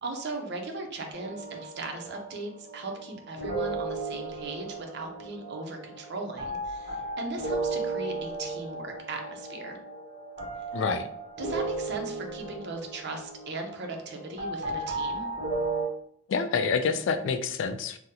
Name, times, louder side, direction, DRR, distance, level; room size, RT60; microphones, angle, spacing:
voice 1, 0.0-9.8 11.4-15.3, right 2 dB, 60° right, 3 dB, 0.6 m, -38 dB
sound 1, 1.1-15.8, right 3 dB, 35° right, 1.0 m, -35 dB
voice 2, 10.7-11.1 16.3-18.0, left 5 dB, 70° left, 9 dB, 0.3 m, -27 dB
3.6 x 2.0 x 2.8 m, 0.68 s
head